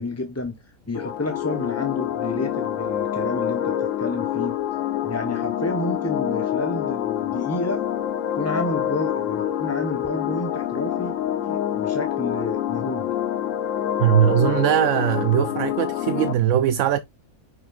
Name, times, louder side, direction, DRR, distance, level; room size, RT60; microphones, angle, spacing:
voice 1, 0.0-4.6 5.0-7.8 8.3-11.1 11.4-13.1, left 1 dB, 10° left, 0.8 m, -30 dB
sound 1, 0.9-16.3, left 10 dB, 65° left, 1.0 m, -26 dB
voice 2, 14.0-17.0, right 11 dB, 65° right, 0.8 m, -20 dB
9.3 x 5.9 x 2.4 m
omnidirectional pair, 1.6 m